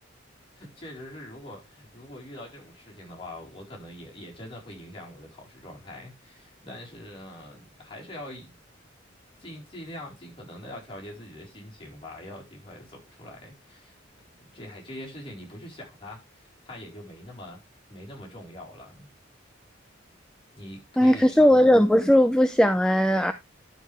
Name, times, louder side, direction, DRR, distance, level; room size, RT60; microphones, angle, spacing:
voice 1, 0.5-8.5 9.4-14.0 14.4-17.6 17.9-19.1 20.5-21.6, left 1 dB, 30° left, 4.3 m, -43 dB
voice 2, 21.0-23.3, equal, 5° left, 0.5 m, -18 dB
11.0 x 6.5 x 3.4 m
head